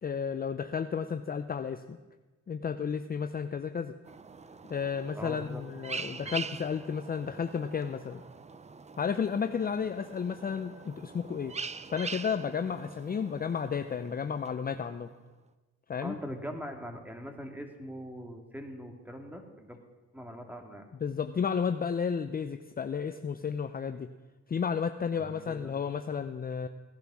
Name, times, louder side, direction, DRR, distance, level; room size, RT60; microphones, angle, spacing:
voice 1, 0.0-2.0 2.5-3.9 4.7-8.2 9.0-11.5 11.9-15.1 15.9-16.2 21.0-24.1 24.5-26.7, left 6 dB, 30° left, 8 dB, 0.6 m, -32 dB
sound 1, 4.1-15.0, right 4 dB, 20° right, 0.7 m, -44 dB
voice 2, 5.2-5.6 16.0-19.8 20.1-20.8 25.2-25.8, equal, 5° right, 4 dB, 2.4 m, -42 dB
17.5 x 10.5 x 6.2 m, 1.2 s
cardioid pair, 90°, 30 cm